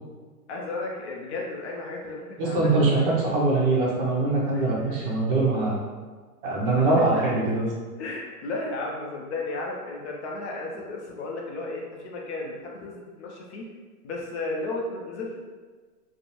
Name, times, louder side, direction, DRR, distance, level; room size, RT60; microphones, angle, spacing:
voice 1, 0.5-2.9 4.5-4.7 7.0-7.1 8.0-13.6 14.0-15.4, left 2 dB, 50° left, -1 dB, 0.5 m, -34 dB
voice 2, 2.4-5.8 6.4-7.7, right 2 dB, 35° right, -4 dB, 0.7 m, -23 dB
2.6 x 2.0 x 2.9 m, 1.4 s
hypercardioid pair, 135°, 47 cm